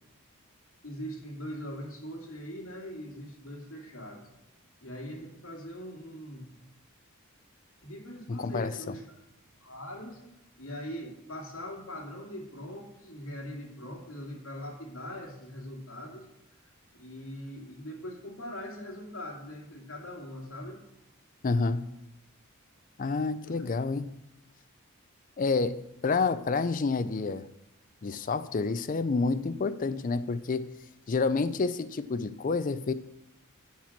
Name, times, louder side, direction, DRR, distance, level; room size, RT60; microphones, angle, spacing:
voice 1, 0.8-4.2 4.8-6.5 7.8-9.2 9.6-10.2 10.6-16.3 16.9-20.8 23.4-23.7, equal, 70° left, -1 dB, 2.2 m, -41 dB
voice 2, 8.3-8.7 21.4-21.9 23.0-24.2 25.4-27.5 28.0-30.7 31.1-32.9, left 4 dB, 40° left, 13 dB, 0.4 m, -29 dB
7.3 x 5.9 x 7.3 m, 0.85 s
head